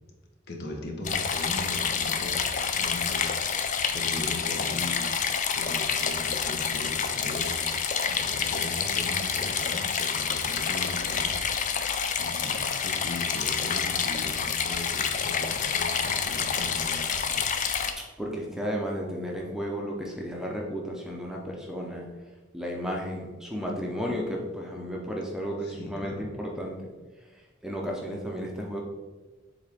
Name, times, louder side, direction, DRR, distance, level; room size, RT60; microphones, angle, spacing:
voice 1, 0.5-3.3 3.9-5.1 5.5-7.7 8.1-11.4 11.8-11.9 12.2-17.5 25.6-26.2, left 2 dB, 55° left, 1 dB, 1.0 m, -38 dB
sound 1, 1.0-17.9, left 6 dB, 40° left, 0.4 m, -28 dB
voice 2, 18.0-22.1 22.5-26.9 27.6-28.8, equal, 5° right, -1 dB, 0.6 m, -33 dB
7.2 x 3.8 x 3.5 m, 1.3 s
head